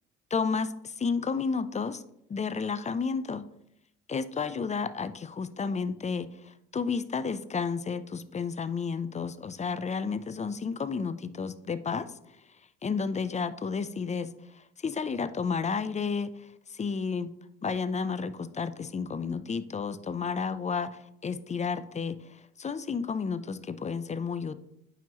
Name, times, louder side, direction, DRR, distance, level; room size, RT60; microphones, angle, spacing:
voice 1, 0.3-2.0 2.3-3.4 4.1-12.1 12.8-17.3 17.6-24.5, left 5 dB, 20° left, 14 dB, 0.5 m, -32 dB
9.0 x 6.2 x 2.9 m, 0.78 s
hypercardioid pair, 60°, 33 cm